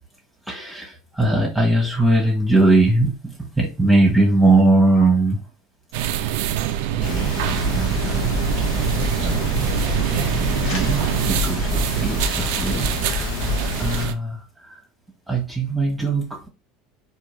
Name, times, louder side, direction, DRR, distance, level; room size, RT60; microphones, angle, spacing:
voice 1, 0.5-5.4 6.2-6.5 7.0-8.5 8.9-13.3 13.8-14.4 14.7-14.8 15.3-16.5, right 2 dB, 5° right, 1.1 m, -21 dB
sound 1, 5.9-14.1, right 11 dB, 65° right, 0.4 m, -24 dB
sound 2, 7.0-14.1, left 4 dB, 60° left, 1.1 m, -27 dB
3.6 x 2.5 x 3.2 m
hypercardioid pair, 75°, 0 cm